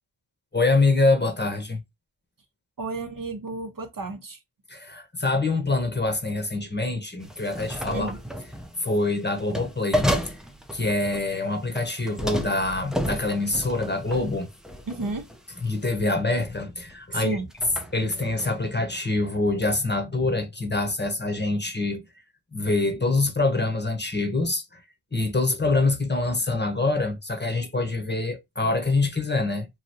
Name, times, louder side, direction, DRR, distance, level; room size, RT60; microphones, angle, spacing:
voice 1, 0.5-1.8 4.7-8.1 8.8-10.4 10.7-14.5 15.6-17.4 17.9-22.0 22.5-24.8 25.1-29.7, left 2 dB, 20° left, 0.9 m, -25 dB
voice 2, 2.8-4.4 7.9-8.2 14.9-15.3 17.1-17.5, right 3 dB, 45° right, 0.7 m, -32 dB
sound 1, 7.2-8.7 9.4-11.4 11.8-15.4 15.9-16.1 16.4-17.0 17.5-18.5, equal, ahead, 0.5 m, -32 dB
3.1 x 2.6 x 2.6 m
cardioid pair, 60°, 49 cm